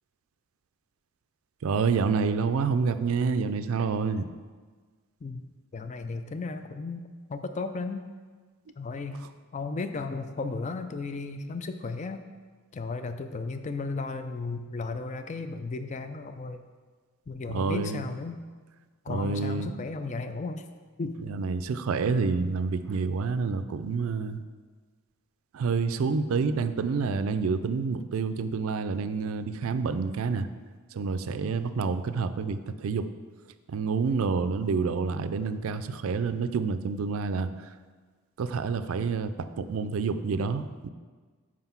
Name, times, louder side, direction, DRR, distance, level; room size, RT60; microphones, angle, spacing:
voice 1, 1.6-4.2 17.5-18.1 19.1-19.7 21.3-24.4 25.5-30.5 30.9-33.1 33.7-37.7 38.4-40.9, right 5 dB, 70° right, 11 dB, 0.4 m, -28 dB
voice 2, 5.2-7.0 7.3-8.0 8.8-9.2 9.5-12.2 12.7-16.6 17.3-18.4 19.0-20.7 21.0-21.2, left 3 dB, 35° left, 8 dB, 0.3 m, -34 dB
5.8 x 4.9 x 5.7 m, 1.5 s
head